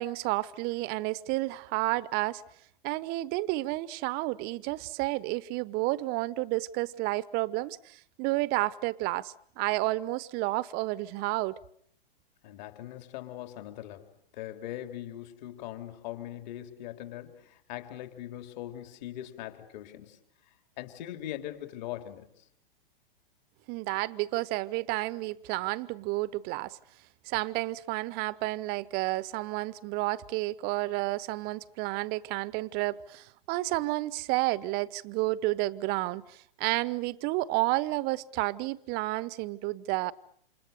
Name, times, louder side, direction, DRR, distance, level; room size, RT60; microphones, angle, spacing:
voice 1, 0.0-2.4 2.8-11.6 23.7-26.8 27.2-40.1, right 19 dB, 35° right, 1.0 m, -31 dB
voice 2, 12.4-20.2 20.5-22.5, left 13 dB, 45° left, 3.5 m, -41 dB
28.5 x 27.5 x 6.8 m
figure-of-eight pair, 110°, 30 cm